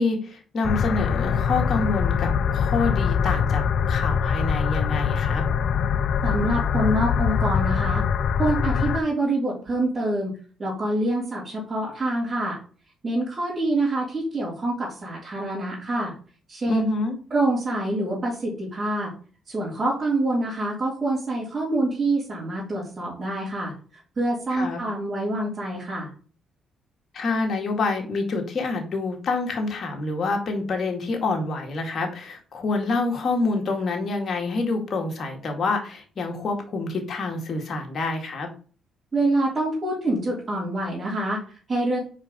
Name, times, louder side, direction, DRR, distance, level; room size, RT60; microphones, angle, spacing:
voice 1, 0.0-5.5 16.7-17.2 24.5-24.8 27.1-38.5, left 3 dB, 50° left, 2 dB, 2.1 m, -27 dB
sound 1, 0.6-9.0, left 7 dB, 65° left, 0.4 m, -23 dB
voice 2, 6.2-8.0 8.4-10.3 10.6-12.6 13.0-16.1 16.5-16.8 17.3-19.1 19.5-23.7 24.2-26.1 39.1-42.0, right 1 dB, 35° right, -7 dB, 3.6 m, -26 dB
5.0 x 4.8 x 5.4 m, 0.40 s
cardioid pair, 90°, 0 cm